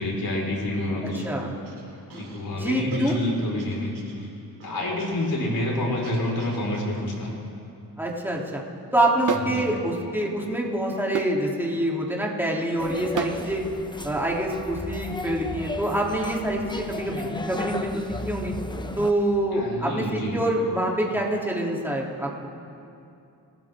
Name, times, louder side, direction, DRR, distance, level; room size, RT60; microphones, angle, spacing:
voice 1, 0.0-1.2 2.1-3.9 4.6-7.3 9.3-9.7 19.5-20.4, left 1 dB, 60° left, -2 dB, 5.1 m, -28 dB
sound 1, 1.1-7.1, right 3 dB, 80° right, 3.3 m, -44 dB
voice 2, 2.5-3.2 8.0-8.6 8.9-13.6 14.0-18.5 19.0-22.5, right 1 dB, 5° right, -3 dB, 3.3 m, -26 dB
sound 2, 9.3-9.6 11.2-11.4 13.2-13.4, right 7 dB, 50° right, 0.9 m, -27 dB
sound 3, 12.8-19.1, left 1 dB, 10° left, 1.1 m, -35 dB
27.5 x 13.5 x 3.8 m, 2.6 s
cardioid pair, 60°, 40 cm